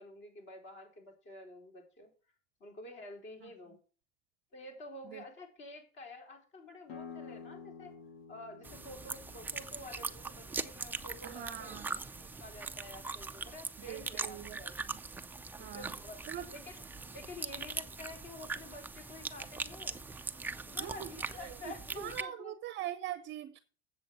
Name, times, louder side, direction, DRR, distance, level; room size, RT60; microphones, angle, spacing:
voice 1, 0.0-2.1 2.6-3.8 4.5-7.9 8.3-11.8 12.2-14.8 15.6-16.2 16.5-16.8 17.1-20.0 20.7-22.5, left 2 dB, 40° left, 4.3 m, -49 dB
sound 1, 6.9-12.3, left 6 dB, 80° left, 2.2 m, -52 dB
sound 2, 8.6-22.2, right 3 dB, 5° right, 0.4 m, -41 dB
voice 2, 11.2-12.0 13.9-14.6 14.9-15.0 15.6-15.9 16.3-16.5 20.8-21.1 21.4-23.6, right 12 dB, 35° right, 0.7 m, -42 dB
7.9 x 7.6 x 6.2 m
supercardioid pair, 125°, 31 cm